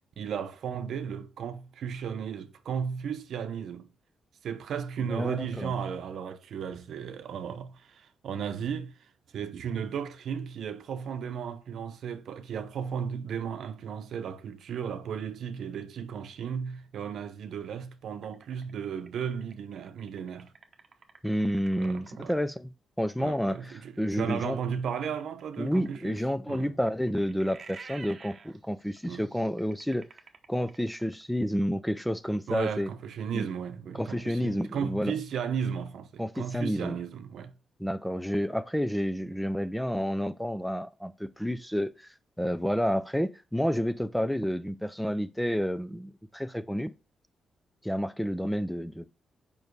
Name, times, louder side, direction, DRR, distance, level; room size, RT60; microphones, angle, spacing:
voice 1, 0.2-3.9 4.4-20.5 21.8-22.3 23.2-26.2 26.5-26.8 29.1-29.2 32.5-37.6, right 7 dB, 75° right, 0.8 m, -35 dB
voice 2, 5.1-5.7 21.2-22.7 23.0-24.6 25.6-30.1 30.5-32.9 33.3-33.5 33.9-35.1 36.2-37.0 37.8-46.9 47.8-49.1, equal, 5° left, 0.5 m, -30 dB
sound 1, 18.2-22.3 25.2-31.2, right 5 dB, 45° right, 0.9 m, -51 dB
6.9 x 5.4 x 3.2 m
cardioid pair, 100°, 0 cm